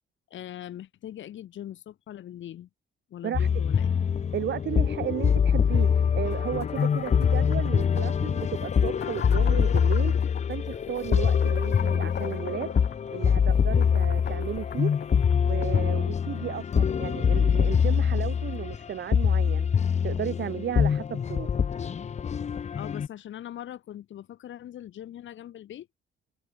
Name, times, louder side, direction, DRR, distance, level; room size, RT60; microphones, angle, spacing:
voice 1, 0.3-2.7 3.1-3.9 22.8-25.9, left 11 dB, 75° left, 6.1 m, -41 dB
sound 1, 3.3-23.1, left 7 dB, 35° left, 0.6 m, -24 dB
voice 2, 4.3-12.8 13.1-14.9 15.4-19.7 20.0-21.5, right 10 dB, 60° right, 2.4 m, -34 dB
sound 2, 6.3-15.9, left 8 dB, 55° left, 3.2 m, -39 dB
cardioid pair, 90°, 20 cm